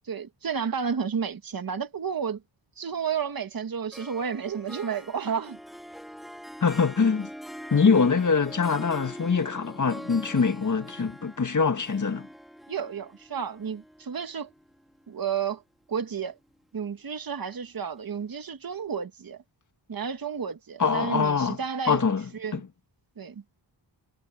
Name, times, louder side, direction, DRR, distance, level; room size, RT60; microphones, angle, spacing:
voice 1, 0.0-2.4 2.8-5.6 12.7-14.5 15.1-15.6 15.9-16.4 16.7-19.4 19.9-22.1 22.3-22.6 23.2-23.4, right 7 dB, 50° right, 1.8 m, -31 dB
Harp, 3.9-15.3, equal, ahead, 2.3 m, -43 dB
voice 2, 6.6-7.3 7.7-12.3 20.8-21.6 21.9-22.7, left 5 dB, 45° left, 1.9 m, -24 dB
wide cardioid pair, 95°, 44 cm